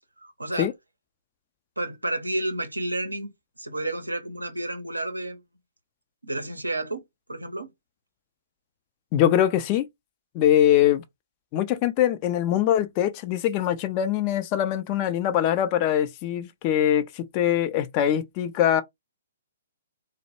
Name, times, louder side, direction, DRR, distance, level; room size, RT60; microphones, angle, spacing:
voice 1, 0.2-0.7 1.8-3.3 3.6-5.4 6.2-7.0 7.3-7.7, right 1 dB, 90° right, 0.6 m, -30 dB
voice 2, 9.1-9.9 10.3-11.0 11.5-18.8, left 11 dB, 30° left, 0.4 m, -22 dB
2.1 x 2.0 x 2.9 m
figure-of-eight pair, 125°, 0 cm